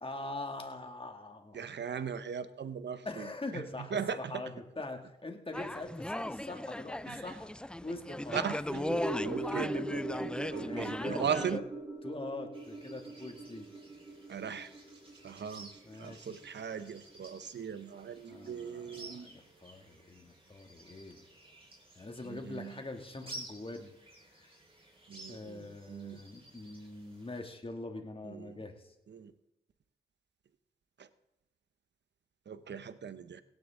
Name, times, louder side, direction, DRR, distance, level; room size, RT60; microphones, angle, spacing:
voice 1, 0.0-1.7 3.0-7.5 7.8-8.4 9.4-9.8 10.6-11.6 12.0-13.7 15.8-16.3 18.2-21.2 21.9-23.9 24.3-24.5 25.3-28.9, left 2 dB, 30° left, 4 dB, 2.4 m, -43 dB
voice 2, 1.5-3.6 3.9-4.4 7.1-7.3 8.3-10.3 10.5-11.6 14.3-14.7 15.2-15.7 16.0-19.3 22.3-22.7 25.1-26.2 28.2-28.6 29.1-29.3 31.0-31.1 32.5-33.4, right 7 dB, 70° right, 13 dB, 0.9 m, -39 dB
sound 1, 5.5-11.6, left 1 dB, 5° left, 0.4 m, -37 dB
sound 2, 8.7-17.1 17.4-17.5, right 1 dB, 15° right, 4.5 m, -41 dB
sound 3, 12.5-27.4, right 1 dB, 30° right, 4.8 m, -54 dB
17.0 x 10.5 x 3.8 m, 0.89 s
cardioid pair, 50°, 19 cm